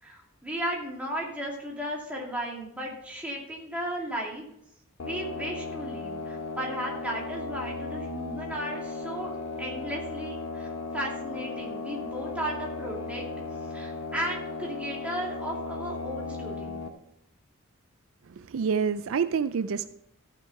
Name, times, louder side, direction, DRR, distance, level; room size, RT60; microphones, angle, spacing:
voice 1, 0.0-4.4 5.0-13.3 13.7-16.8, right 1 dB, 5° right, -3 dB, 2.4 m, -35 dB
sound 1, 5.0-16.9, left 3 dB, 75° left, 1.0 m, -36 dB
voice 2, 18.4-19.9, right 6 dB, 65° right, 12 dB, 0.4 m, -27 dB
14.5 x 6.1 x 4.6 m, 0.75 s
head